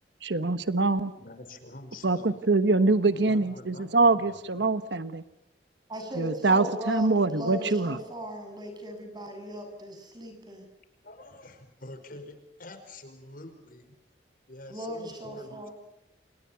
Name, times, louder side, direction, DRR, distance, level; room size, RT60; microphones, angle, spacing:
voice 1, 0.2-1.1 2.0-5.2 6.2-8.0, right 3 dB, 80° right, 12 dB, 1.2 m, -24 dB
voice 2, 1.2-2.4 3.1-4.6 11.0-13.8 14.5-15.7, left 2 dB, 55° left, 8 dB, 5.0 m, -46 dB
voice 3, 5.9-10.7 14.7-15.7, equal, 25° right, 5 dB, 7.5 m, -37 dB
28.5 x 28.5 x 5.8 m, 0.87 s
head